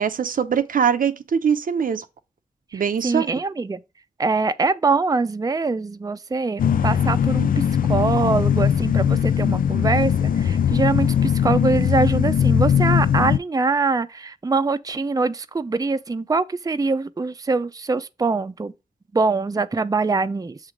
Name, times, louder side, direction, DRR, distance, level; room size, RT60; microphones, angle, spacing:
voice 1, 0.0-2.0 2.7-3.3, right 7 dB, 75° right, 0.6 m, -22 dB
voice 2, 2.7-3.8 4.2-18.7 19.1-20.6, right 4 dB, 25° right, 0.5 m, -23 dB
sound 1, 6.6-13.4, left 8 dB, 75° left, 0.4 m, -20 dB
7.3 x 3.1 x 5.1 m
cardioid pair, 50°, 14 cm